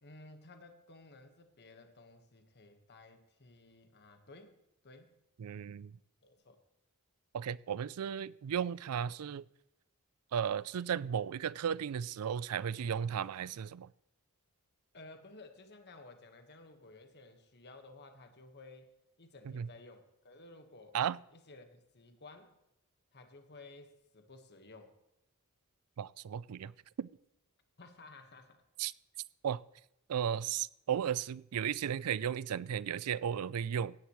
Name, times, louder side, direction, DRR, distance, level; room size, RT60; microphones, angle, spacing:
voice 1, 0.0-4.6 4.8-5.2 6.2-6.6 14.9-18.9 19.2-21.0 21.3-22.5 23.1-25.0 27.8-28.6, left 2 dB, 50° left, 1.4 m, -55 dB
voice 2, 5.4-5.9 7.3-9.4 10.3-13.9 19.5-19.7 20.9-21.2 26.0-26.7 27.0-27.1 28.8-28.9 29.4-29.6 30.1-34.0, right 8 dB, 80° right, 0.4 m, -35 dB
16.5 x 10.5 x 3.1 m
head